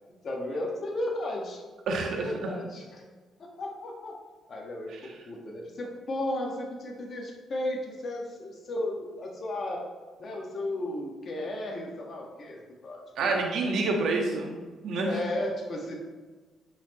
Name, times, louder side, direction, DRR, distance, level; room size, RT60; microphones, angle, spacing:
voice 1, 0.2-1.6 2.0-3.0 3.6-4.2 4.5-9.8 10.2-13.4 15.0-15.9, left 1 dB, 45° left, -1 dB, 1.6 m, -34 dB
voice 2, 1.9-2.3 13.2-14.6 14.8-15.1, right 3 dB, 75° right, 1 dB, 1.5 m, -27 dB
8.5 x 5.9 x 3.1 m, 1.3 s
cardioid pair, 90°, 0 cm